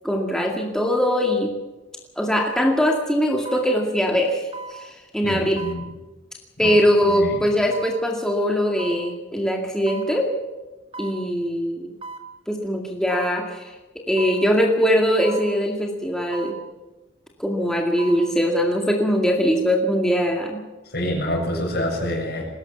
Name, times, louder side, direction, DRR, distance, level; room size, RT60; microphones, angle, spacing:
voice 1, 0.0-1.5 2.2-5.6 6.6-10.3 11.0-11.9 12.5-13.8 14.1-16.6 17.4-20.6, equal, 5° left, 0 dB, 2.2 m, -21 dB
Monitor hotler, 1.2-1.4 2.4-2.6 3.4-3.7 4.5-4.8 5.6-5.8 6.6-6.9 7.7-8.0 8.8-9.0 9.9-10.1 10.9-11.2 12.0-12.3 13.1-13.3 14.2-14.4 15.2-15.5 16.3-16.6 17.8-18.2 18.7-18.8, right 3 dB, 30° right, 2.4 m, -36 dB
voice 2, 5.2-5.8 6.6-6.7 7.1-7.4 20.9-22.5, equal, 60° left, 1 dB, 7.3 m, -27 dB
21.0 x 18.5 x 7.2 m, 1.1 s
head